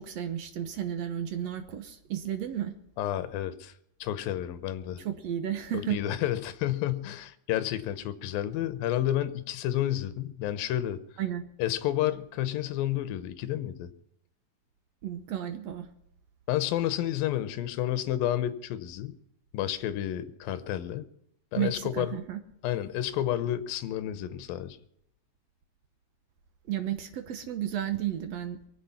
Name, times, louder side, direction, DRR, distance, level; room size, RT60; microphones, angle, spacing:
voice 1, 0.0-2.7 5.0-6.0 11.2-11.4 15.0-15.9 21.6-22.4 26.7-28.6, right 10 dB, 75° right, 8 dB, 1.5 m, -33 dB
voice 2, 3.0-3.7 4.0-5.0 5.7-11.0 11.6-13.9 16.5-19.1 19.5-21.1 21.5-22.2 22.6-24.8, left 12 dB, 75° left, 13 dB, 2.5 m, -30 dB
23.5 x 8.2 x 5.8 m, 0.75 s
omnidirectional pair, 4.5 m